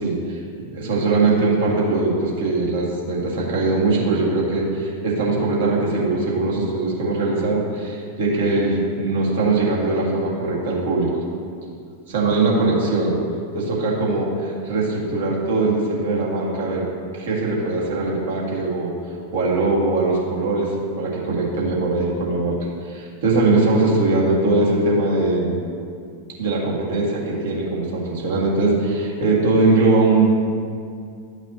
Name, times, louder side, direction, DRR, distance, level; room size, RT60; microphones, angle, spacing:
voice 1, 0.0-11.1 12.1-13.2 13.5-16.9 17.2-18.9 19.3-22.6 22.8-25.6 26.4-30.3, right 3 dB, 60° right, -4 dB, 1.8 m, -21 dB
12.0 x 6.1 x 2.7 m, 2.3 s
figure-of-eight pair, 90°, 0 cm